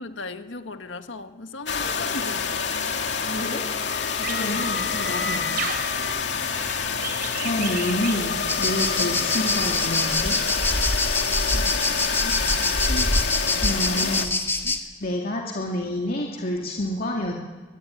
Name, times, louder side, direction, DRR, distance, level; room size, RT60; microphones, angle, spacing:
voice 1, 0.0-2.7 4.3-4.7 5.5-5.7 9.0-9.3 11.5-14.2 14.6-14.8, left 2 dB, 85° left, 1.7 m, -38 dB
sound 1, 1.7-14.3, left 6 dB, 70° left, 2.3 m, -27 dB
voice 2, 3.2-3.6 4.2-5.4 7.4-10.4 13.6-14.3 15.0-17.3, left 1 dB, 50° left, 2.5 m, -28 dB
sound 2, 4.1-10.8, right 4 dB, 55° right, 3.3 m, -36 dB
sound 3, 8.5-14.8, left 2 dB, 15° left, 2.0 m, -25 dB
24.0 x 23.0 x 9.9 m
head